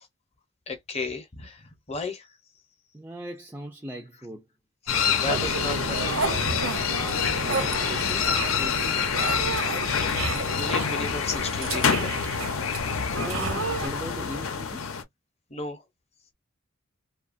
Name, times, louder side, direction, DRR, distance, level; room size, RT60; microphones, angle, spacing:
voice 1, 0.7-2.3 4.9-6.2 10.5-12.3 15.5-15.8, left 3 dB, 30° left, 0.7 m, -34 dB
voice 2, 2.9-4.5 7.3-9.0 13.2-14.8, right 1 dB, 10° right, 0.3 m, -39 dB
sound 1, 4.9-15.0, left 6 dB, 75° left, 0.6 m, -27 dB
sound 2, 5.3-13.1, right 3 dB, 65° right, 0.6 m, -36 dB
sound 3, 6.1-6.8 7.0-13.9, right 4 dB, 90° right, 1.0 m, -32 dB
2.8 x 2.3 x 2.4 m
head